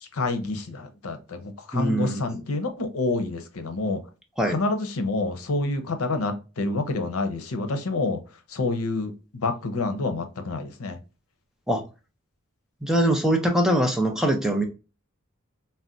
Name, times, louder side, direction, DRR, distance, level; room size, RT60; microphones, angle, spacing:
voice 1, 0.0-4.0 4.5-8.2 8.5-11.0, left 3 dB, 85° left, 0.7 m, -28 dB
voice 2, 1.7-2.4 4.4-4.6 11.7-11.8 12.8-14.6, right 1 dB, ahead, 0.5 m, -22 dB
4.0 x 2.1 x 2.5 m
head